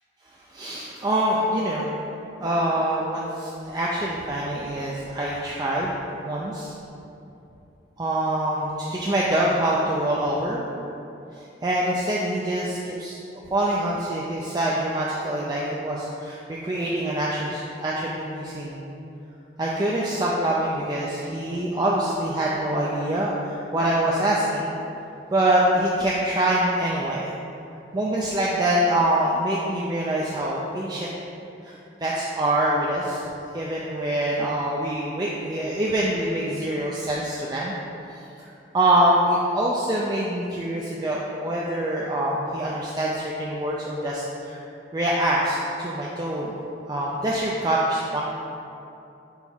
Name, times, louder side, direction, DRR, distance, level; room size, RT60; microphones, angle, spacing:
voice 1, 0.5-2.0 2.4-6.7 8.0-10.6 11.4-13.2 13.5-18.8 19.6-24.7 25.3-27.3 27.9-31.1 31.6-33.2 33.5-37.7 38.1-38.5 38.7-44.6 44.9-46.6 46.9-48.2, right 1 dB, 20° right, -5 dB, 0.4 m, -25 dB
6.2 x 3.7 x 4.5 m, 2.7 s
head